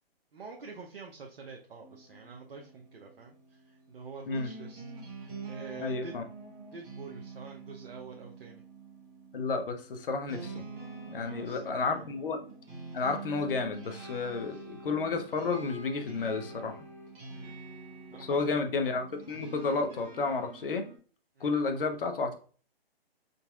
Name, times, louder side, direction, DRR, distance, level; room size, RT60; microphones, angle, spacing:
voice 1, 0.3-4.8 5.2-6.2 6.7-8.6 11.1-12.1 14.5-14.6 17.3-17.6 18.1-18.5 21.4-21.5, right 4 dB, 65° right, 1 dB, 0.7 m, -46 dB
sound 1, 1.8-21.0, right 4 dB, 20° right, 1.0 m, -46 dB
voice 2, 5.8-6.2 9.3-10.6 11.1-12.4 12.9-16.7 18.2-20.8 21.4-22.4, left 4 dB, 60° left, 6 dB, 0.8 m, -31 dB
4.1 x 3.9 x 2.3 m, 0.40 s
figure-of-eight pair, 135°, 31 cm